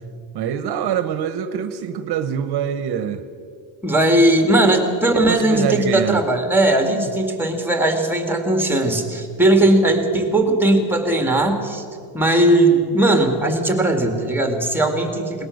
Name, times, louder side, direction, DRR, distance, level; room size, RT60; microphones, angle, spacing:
voice 1, 0.3-3.2 5.1-6.2 6.8-7.0, right 9 dB, 60° right, 11 dB, 1.1 m, -25 dB
voice 2, 3.8-11.8 12.1-15.5, right 1 dB, 5° right, 4 dB, 2.3 m, -18 dB
21.0 x 19.0 x 6.6 m, 2.3 s
cardioid pair, 135°, 45 cm